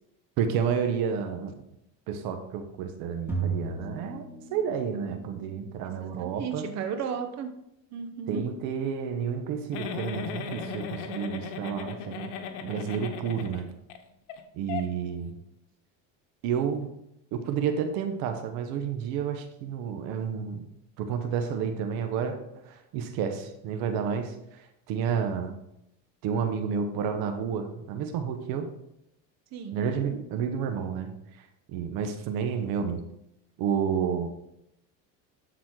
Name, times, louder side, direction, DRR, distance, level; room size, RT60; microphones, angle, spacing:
voice 1, 0.4-1.5 2.1-4.2 4.5-6.7 8.3-12.3 12.6-13.6 14.5-15.4 16.4-16.9 17.3-20.6 21.0-25.5 26.2-28.7 29.7-33.0 33.6-34.3, right 7 dB, 65° right, 7 dB, 1.1 m, -30 dB
sound 1, 3.3-5.1, right 4 dB, 5° right, 2.4 m, -33 dB
voice 2, 6.2-7.5 7.9-8.4 29.5-29.8, right 7 dB, 45° right, 7 dB, 1.0 m, -34 dB
Giggle, 9.7-14.0 14.3-14.4 14.7-14.8, left 5 dB, 80° left, 1.2 m, -36 dB
11.5 x 4.2 x 4.7 m, 0.82 s
supercardioid pair, 110°, 38 cm